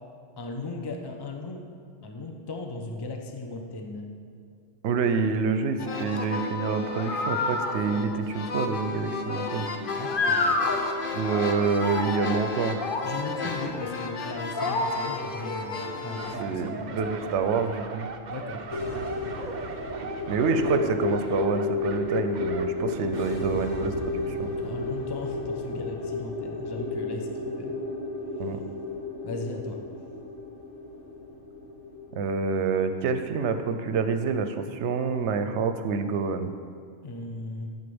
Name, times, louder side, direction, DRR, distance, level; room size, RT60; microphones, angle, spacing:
voice 1, 0.4-1.6 2.0-4.1 9.9-10.6 13.0-17.0 18.3-18.6 18.9-19.2 24.6-27.7 29.2-29.8 37.0-37.7, left 2 dB, 25° left, 3 dB, 0.7 m, -37 dB
voice 2, 4.8-9.8 11.1-12.8 16.4-18.1 20.3-24.5 28.4-28.6 32.1-36.5, right 5 dB, 70° right, 8 dB, 0.9 m, -27 dB
sound 1, 5.8-16.4, left 3 dB, 50° left, 0.9 m, -30 dB
sound 2, 16.2-24.0 24.3-24.5, right 5 dB, 50° right, 0.6 m, -39 dB
sound 3, 18.7-32.3, left 3 dB, 75° left, 1.5 m, -32 dB
6.8 x 6.7 x 7.0 m, 2.1 s
omnidirectional pair, 1.2 m